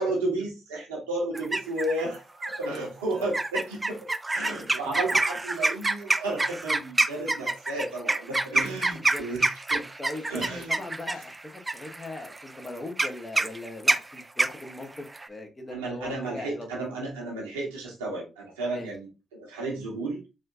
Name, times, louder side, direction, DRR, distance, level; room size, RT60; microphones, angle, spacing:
voice 1, 0.0-4.0 4.3-9.9 10.3-10.7 15.7-20.2, right 2 dB, 90° right, 1.1 m, -32 dB
sound 1, 1.3-2.0 2.4-2.8 3.3-15.3, right 2 dB, 25° right, 0.4 m, -27 dB
voice 2, 8.9-9.3 10.0-11.4 11.7-16.7 18.7-18.9, left 2 dB, 30° left, 1.1 m, -40 dB
4.2 x 2.7 x 2.5 m
hypercardioid pair, 40°, 0 cm